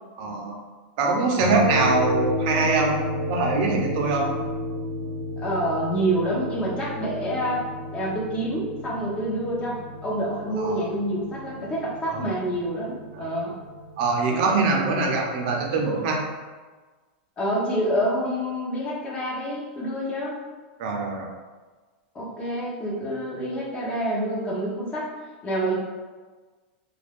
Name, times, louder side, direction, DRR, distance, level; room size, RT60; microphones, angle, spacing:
voice 1, 0.2-0.6 1.0-3.0 3.3-4.4 10.6-10.8 12.1-12.2 13.2-13.3 14.0-16.2 20.8-21.3, right 3 dB, 50° right, 1 dB, 0.6 m, -23 dB
sound 1, 1.4-15.9, equal, 80° left, 0.7 m, -32 dB
voice 2, 5.4-13.5 14.3-15.0 17.4-20.4 22.1-25.1 25.4-25.7, right 1 dB, 20° left, -5 dB, 0.7 m, -27 dB
2.4 x 2.3 x 3.5 m, 1.3 s
supercardioid pair, 155°, 6 cm